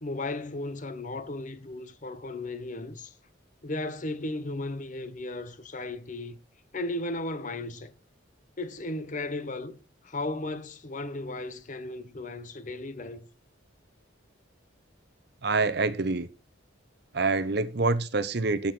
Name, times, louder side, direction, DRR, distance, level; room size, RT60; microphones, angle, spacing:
voice 1, 0.0-3.1 3.6-6.4 6.7-7.9 8.6-9.8 10.0-13.3, left 2 dB, 40° left, 0.9 m, -35 dB
voice 2, 15.4-16.3 17.1-18.7, right 3 dB, 55° right, 0.8 m, -26 dB
10.0 x 8.7 x 4.5 m
head